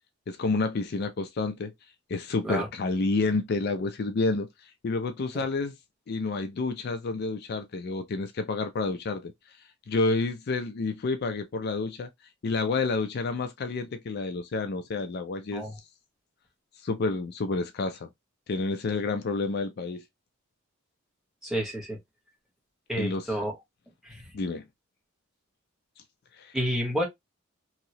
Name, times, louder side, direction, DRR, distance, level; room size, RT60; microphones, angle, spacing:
voice 1, 0.3-1.7 2.1-5.8 6.1-9.3 9.9-12.1 12.4-15.8 16.8-18.1 18.5-20.0 23.0-23.4 24.3-24.6 26.3-26.5, left 3 dB, 50° left, 0.4 m, -29 dB
voice 2, 21.4-22.0 22.9-23.5 24.0-24.3 26.5-27.1, equal, ahead, 1.1 m, -30 dB
2.9 x 2.7 x 2.7 m
head